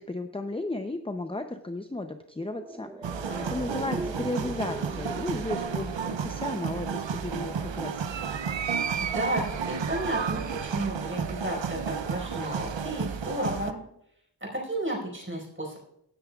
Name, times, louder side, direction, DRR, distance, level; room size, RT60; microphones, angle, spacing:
voice 1, 0.0-3.2 3.5-8.0, left 2 dB, 15° left, 7 dB, 0.6 m, -34 dB
sound 1, 2.3-6.9 7.1-7.2, right 1 dB, 5° right, 0.9 m, -41 dB
sound 2, 3.0-13.7, right 6 dB, 80° right, 0.7 m, -32 dB
voice 2, 3.3-4.0 9.0-13.8 14.4-15.8, right 1 dB, 25° right, -2 dB, 5.1 m, -33 dB
17.0 x 9.6 x 2.4 m, 0.76 s
wide cardioid pair, 45°, 44 cm